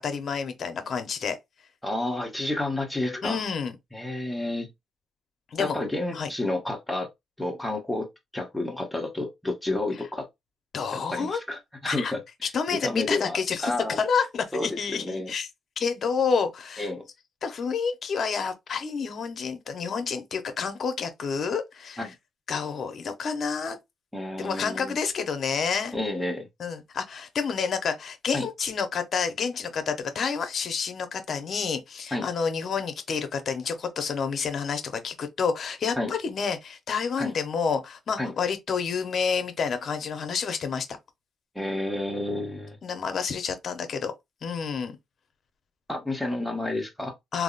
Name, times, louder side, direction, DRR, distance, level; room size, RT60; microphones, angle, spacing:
voice 1, 0.0-1.4 3.2-3.8 5.5-5.8 6.1-6.3 10.7-11.4 11.8-12.1 12.5-15.5 15.8-16.9 17.4-22.0 22.5-23.8 24.4-25.9 26.6-41.0 42.8-44.1 44.4-45.0 47.3-47.4, left 6 dB, 55° left, 0.7 m, -29 dB
voice 2, 1.8-3.4 3.9-4.7 5.6-7.1 7.4-10.3 10.9-12.2 12.7-14.0 14.5-15.3 16.8-17.1 22.0-22.1 24.1-24.9 25.9-26.5 28.3-28.5 32.1-32.3 36.0-36.1 37.2-37.3 38.2-38.3 41.5-42.8 45.9-47.1, left 2 dB, 5° left, 1.0 m, -30 dB
3.5 x 2.0 x 2.4 m
cardioid pair, 90°, 0 cm